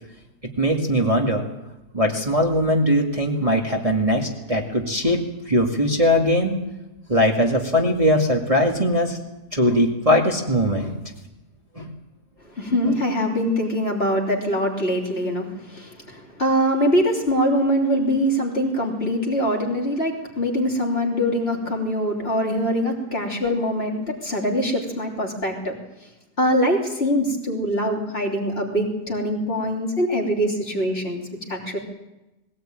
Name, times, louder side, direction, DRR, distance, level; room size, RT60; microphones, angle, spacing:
voice 1, 0.6-1.4 1.9-6.5 7.1-9.2 9.5-10.9 11.8-11.9, equal, 20° right, 0 dB, 2.2 m, -20 dB
voice 2, 12.6-25.8 26.4-31.2 31.5-31.8, equal, 40° left, 0 dB, 3.6 m, -23 dB
20.5 x 17.5 x 9.1 m, 0.98 s
omnidirectional pair, 1.7 m